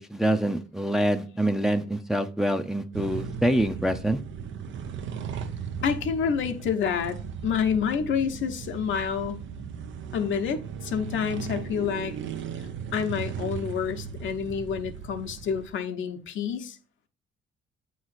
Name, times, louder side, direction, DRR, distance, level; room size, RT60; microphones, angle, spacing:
voice 1, 0.0-4.2, right 1 dB, ahead, 0.5 m, -25 dB
sound 1, 2.9-15.7, right 7 dB, 70° right, 0.7 m, -37 dB
voice 2, 5.8-9.4 10.1-12.1 12.9-16.8, left 7 dB, 70° left, 0.9 m, -28 dB
8.6 x 3.1 x 4.0 m
cardioid pair, 90°, 20 cm